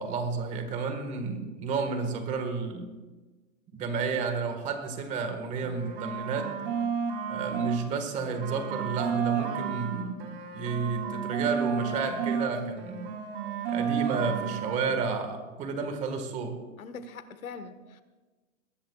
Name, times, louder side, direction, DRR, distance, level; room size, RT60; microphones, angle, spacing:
voice 1, 0.0-2.9 3.7-6.6 7.3-10.2 10.5-13.1 13.7-16.6, right 4 dB, 20° right, 6 dB, 1.6 m, -31 dB
sound 1, 5.5-7.8 8.1-12.5 12.8-14.8, right 7 dB, 40° right, 3.1 m, -32 dB
voice 2, 14.4-14.9 16.8-18.0, left 5 dB, 90° left, 10 dB, 1.5 m, -43 dB
21.5 x 18.5 x 2.4 m, 1.2 s
hypercardioid pair, 155°, 41 cm